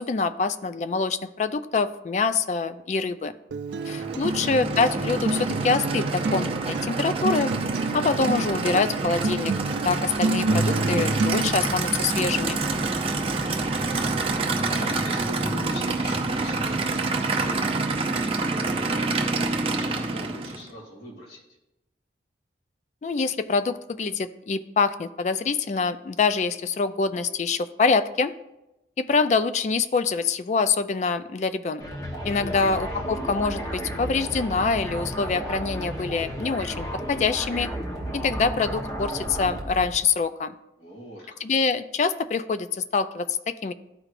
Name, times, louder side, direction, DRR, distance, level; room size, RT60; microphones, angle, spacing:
voice 1, 0.0-3.3 3.9-7.5 7.9-9.5 9.8-12.6 23.0-28.3 29.0-31.8 32.2-37.7 38.1-40.5 41.4-43.7, left 4 dB, 40° left, 12 dB, 0.3 m, -25 dB
Acoustic guitar, 3.5-11.5, right 3 dB, 80° right, 0.4 m, -29 dB
Aircraft / Idling, 3.7-20.7, right 3 dB, 30° right, 0.6 m, -27 dB
voice 2, 13.3-14.0 14.3-19.1 19.5-21.4 32.4-33.0 40.8-41.4, right 1 dB, 70° left, -1 dB, 2.1 m, -41 dB
sound 1, 31.8-40.0, right 1 dB, 20° left, 1.0 m, -33 dB
13.0 x 4.8 x 2.5 m, 0.93 s
head